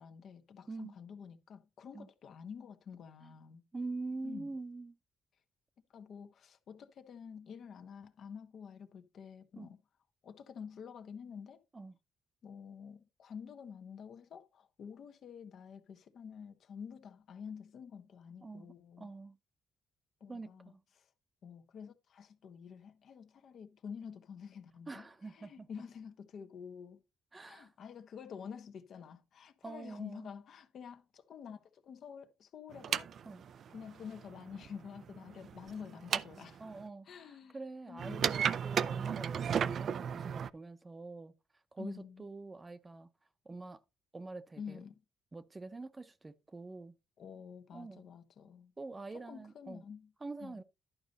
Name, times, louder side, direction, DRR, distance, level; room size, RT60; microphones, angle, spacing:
voice 1, 0.0-3.6 4.2-4.5 5.9-9.8 10.2-11.6 12.4-19.1 20.2-21.1 21.4-27.0 27.4-33.1 33.7-36.6 37.0-37.6 37.9-38.3 38.8-39.2 41.8-42.3 44.6-45.0 47.2-48.7 49.1-50.1 50.4-50.6, left 7 dB, 65° left, 1.1 m, -49 dB
voice 2, 3.7-4.9 9.6-9.7 11.7-12.0 18.4-19.4 20.3-20.8 24.9-25.7 27.3-27.7 29.6-30.3 33.3-33.4 36.6-41.3 41.7-43.1 43.4-43.8 44.1-44.8 45.3-46.9 47.7-48.1 48.8-49.8 50.2-50.6, right 3 dB, 25° right, 0.7 m, -45 dB
sound 1, 32.7-36.8 38.0-40.5, right 8 dB, 60° right, 0.4 m, -35 dB
11.5 x 5.2 x 4.1 m
cardioid pair, 90°, 0 cm